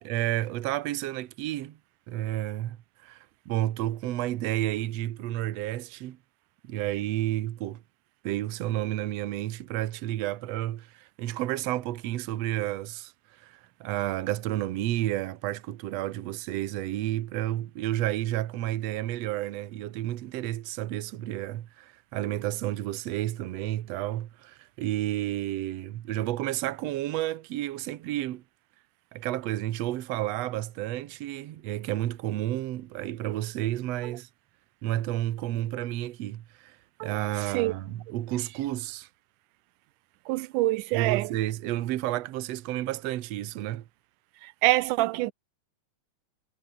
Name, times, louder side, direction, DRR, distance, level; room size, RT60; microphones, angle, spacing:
voice 1, 0.0-1.8 2.1-2.8 3.0-6.2 6.7-7.8 8.2-13.1 13.4-28.4 29.1-34.3 34.8-39.1 40.9-43.8, right 14 dB, 65° right, 1.9 m, -31 dB
voice 2, 37.0-37.7 40.3-41.3 44.4-45.3, right 19 dB, 90° right, 2.2 m, -26 dB
omnidirectional pair, 3.5 m